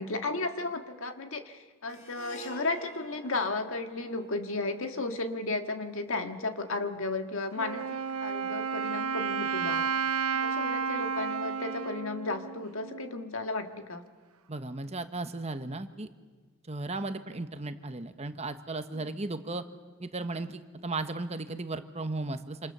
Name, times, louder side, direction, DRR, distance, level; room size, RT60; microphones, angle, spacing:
voice 1, 0.0-7.9 8.2-9.9 10.3-14.1 18.9-19.1, left 3 dB, 65° left, 6 dB, 1.8 m, -34 dB
Harp, 1.9-6.3, right 1 dB, 35° left, 3.8 m, -50 dB
Wind instrument woodwind instrument, 7.6-13.3, right 6 dB, 85° right, 0.8 m, -32 dB
voice 2, 14.5-16.1 16.7-19.6 20.0-22.7, right 2 dB, 30° right, 9 dB, 1.1 m, -35 dB
27.5 x 27.0 x 6.8 m, 1.4 s
head